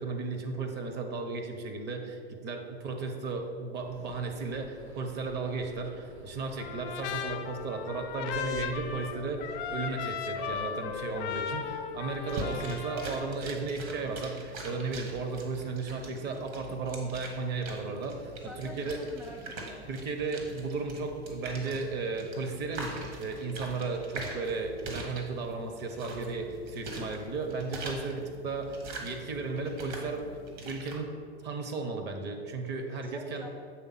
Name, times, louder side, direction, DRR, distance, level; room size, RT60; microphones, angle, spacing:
voice 1, 0.0-19.0 19.9-30.3 30.6-31.1 31.4-33.4, right 3 dB, 30° right, 4 dB, 0.9 m, -35 dB
sound 1, 3.8-12.3, right 1 dB, 80° right, 1.7 m, -51 dB
Trumpet, 6.6-13.3, left 7 dB, 45° left, 0.6 m, -36 dB
sound 2, 12.2-31.0, right 2 dB, 50° right, 1.5 m, -43 dB
voice 2, 18.4-19.9 33.0-33.5, equal, 5° right, 0 dB, 0.3 m, -46 dB
7.2 x 3.6 x 5.6 m, 2.2 s
hypercardioid pair, 100°, 33 cm